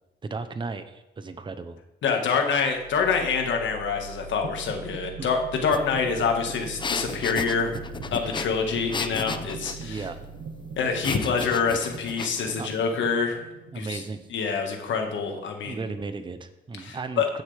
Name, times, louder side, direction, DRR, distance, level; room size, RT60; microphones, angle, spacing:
voice 1, 0.2-1.8 5.2-5.3 9.8-10.2 12.6-12.8 13.7-14.3 15.6-17.2, right 4 dB, 25° right, 10 dB, 0.7 m, -35 dB
voice 2, 2.0-7.7 8.1-10.0 10.8-13.4 13.7-14.0 14.3-15.8 16.8-17.3, left 5 dB, 70° left, 3 dB, 1.8 m, -26 dB
sound 1, 2.5-14.4, right 4 dB, 75° right, 1.6 m, -41 dB
sound 2, 5.7-5.8 6.1-9.8 11.0-12.6, left 4 dB, 25° left, 0.6 m, -34 dB
15.5 x 6.5 x 3.5 m, 0.96 s
cardioid pair, 90°, 20 cm